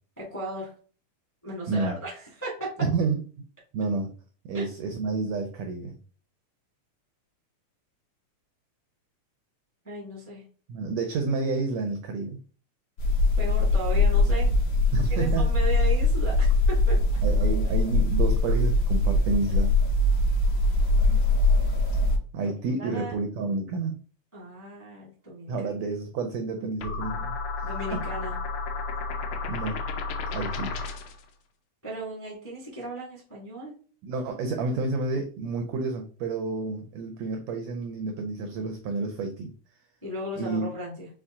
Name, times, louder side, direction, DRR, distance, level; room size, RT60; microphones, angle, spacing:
voice 1, 0.2-0.7 1.4-2.7 4.5-4.6 9.8-10.4 13.4-14.5 15.0-17.0 22.4-23.1 24.3-25.5 27.6-28.3 31.8-33.7 40.0-41.1, right 1 dB, 10° left, -4 dB, 0.6 m, -36 dB
voice 2, 1.7-2.0 2.8-3.2 3.7-4.1 4.4-5.9 10.7-12.4 14.9-15.5 17.2-19.8 22.3-23.9 25.5-27.3 27.6-28.0 29.5-29.8 30.3-30.8 34.0-39.5 40.4-40.7, right 3 dB, 80° right, 4 dB, 1.5 m, -30 dB
sound 1, 13.0-22.2, left 2 dB, 55° left, 1.3 m, -22 dB
sound 2, 26.8-31.2, left 4 dB, 75° left, 1.6 m, -32 dB
5.6 x 2.4 x 3.6 m, 0.40 s
omnidirectional pair, 3.6 m